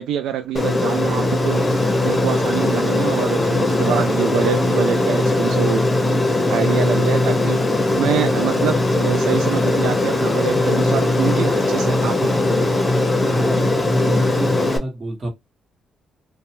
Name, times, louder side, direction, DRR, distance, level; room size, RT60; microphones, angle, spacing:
voice 1, 0.0-5.8 6.5-7.6 8.0-12.4, right 9 dB, 80° right, 0.3 m, -25 dB
Aircraft, 0.6-14.8, left 2 dB, 20° left, 0.8 m, -19 dB
voice 2, 13.3-15.3, right 1 dB, 35° right, 1.5 m, -29 dB
2.8 x 2.2 x 3.0 m
cardioid pair, 90°, 0 cm